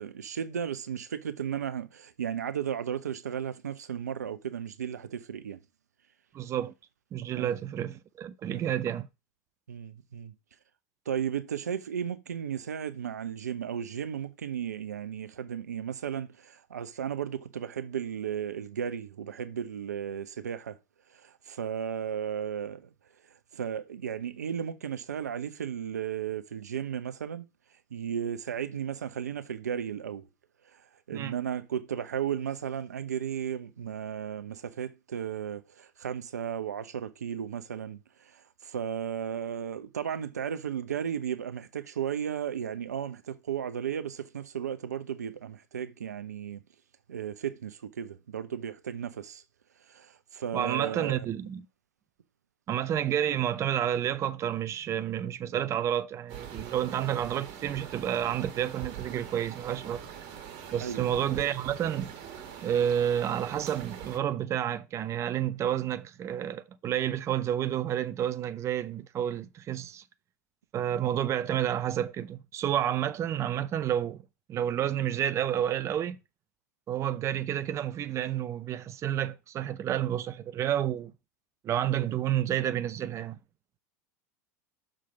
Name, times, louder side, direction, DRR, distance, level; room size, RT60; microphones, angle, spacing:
voice 1, 0.0-5.6 7.3-7.5 8.5-8.7 9.7-10.3 11.1-20.8 21.1-22.9 23.5-27.5 27.9-30.2 30.7-30.8 31.1-46.6 47.1-49.4 49.9-51.2 60.8-61.1, right 8 dB, 85° right, 0.7 m, -35 dB
voice 2, 6.3-6.7 7.1-9.1 31.1-31.3 50.5-51.6 52.7-60.0 60.7-62.1 62.6-70.0 70.7-74.2 74.5-76.2 76.9-81.1 81.6-83.4, right 10 dB, 35° right, 0.6 m, -30 dB
sound 1, 56.3-64.2, right 8 dB, 50° right, 1.7 m, -43 dB
6.4 x 3.8 x 5.7 m
hypercardioid pair, 85°, 9 cm